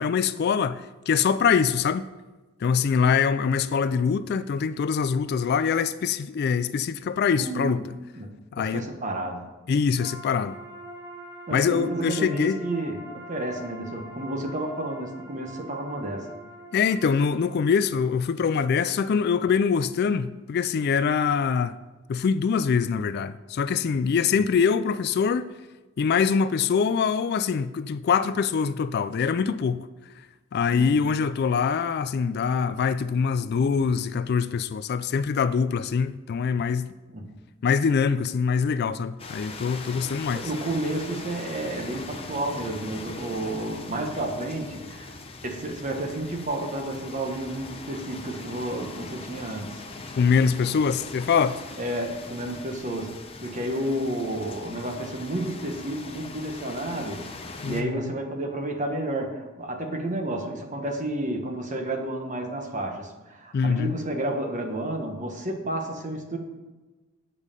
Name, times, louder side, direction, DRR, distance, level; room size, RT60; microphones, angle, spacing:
voice 1, 0.0-2.1 2.6-7.8 8.5-8.9 9.7-10.6 11.5-12.6 16.7-21.8 22.1-25.4 26.0-29.9 30.5-36.9 37.6-40.5 50.2-51.6 57.6-58.1 63.5-63.9, left 6 dB, 50° left, 0.3 m, -24 dB
voice 2, 7.4-7.8 8.1-9.5 11.5-16.2 30.7-31.0 37.1-37.3 40.3-49.8 51.8-53.1 53.4-66.4, right 1 dB, 35° right, 1.3 m, -31 dB
sound 1, 10.0-17.6, right 1 dB, 15° right, 1.2 m, -44 dB
sound 2, 39.2-57.8, left 3 dB, 25° left, 0.8 m, -41 dB
8.2 x 5.4 x 6.7 m
head